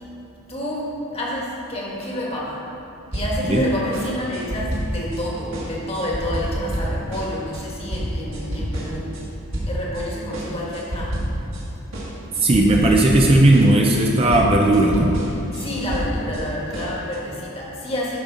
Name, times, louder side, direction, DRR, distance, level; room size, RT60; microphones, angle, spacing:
voice 1, 0.5-2.6 3.1-9.1 9.6-11.2 15.5-18.2, equal, 25° left, -4 dB, 1.5 m, -28 dB
sound 1, 3.1-3.6 3.9-5.2 5.5-9.2 9.5-10.0 10.3-11.6 11.9-16.4 16.7-17.2, equal, 60° right, 1.8 m, -28 dB
voice 2, 12.4-15.2, right 1 dB, 25° right, -1 dB, 0.5 m, -16 dB
12.0 x 5.3 x 3.8 m, 2.9 s
head